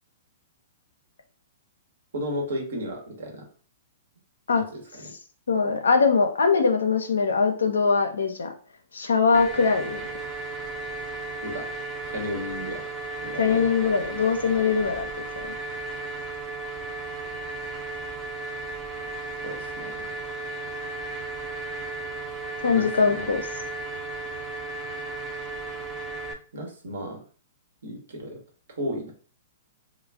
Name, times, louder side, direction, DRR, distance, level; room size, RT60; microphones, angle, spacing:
voice 1, 2.1-3.4 4.6-5.1 5.6-5.8 11.4-11.7 12.1-12.8 13.2-13.6 19.4-20.2 22.7-23.3 26.5-27.2 27.8-28.4 28.8-29.1, equal, 70° right, 1 dB, 0.9 m, -34 dB
voice 2, 5.5-8.5 8.9-10.0 13.4-15.1 22.6-23.4, left 5 dB, 80° left, 6 dB, 0.5 m, -22 dB
sound 1, 9.3-26.3, right 2 dB, 25° right, 0.4 m, -35 dB
2.4 x 2.1 x 3.2 m, 0.43 s
hypercardioid pair, 115°, 0 cm